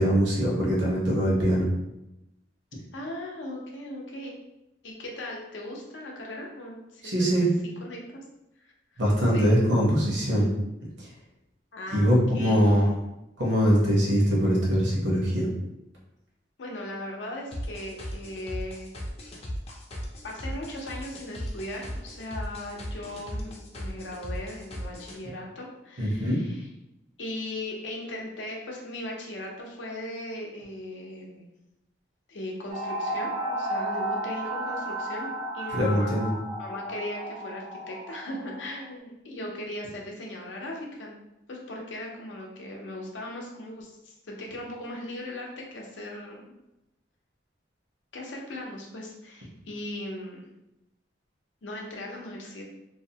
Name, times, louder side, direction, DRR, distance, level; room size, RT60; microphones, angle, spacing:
voice 1, 0.0-1.7 7.0-7.5 9.0-10.5 11.0-11.1 11.9-12.9 13.4-15.5 26.0-26.4 35.7-36.3, equal, 75° right, -4 dB, 0.9 m, -22 dB
voice 2, 2.9-4.3 4.8-7.5 7.8-8.2 8.6-9.0 9.3-9.5 11.7-12.8 16.6-18.9 20.2-26.7 27.2-31.5 32.3-36.2 36.6-41.2 41.5-46.5 48.1-50.4 51.6-52.6, left 1 dB, 85° left, -1 dB, 0.6 m, -38 dB
sound 1, 17.5-25.2, equal, 35° left, 0.4 m, -37 dB
sound 2, 32.7-38.8, right 1 dB, 35° right, 0.3 m, -33 dB
2.6 x 2.0 x 2.7 m, 0.91 s
head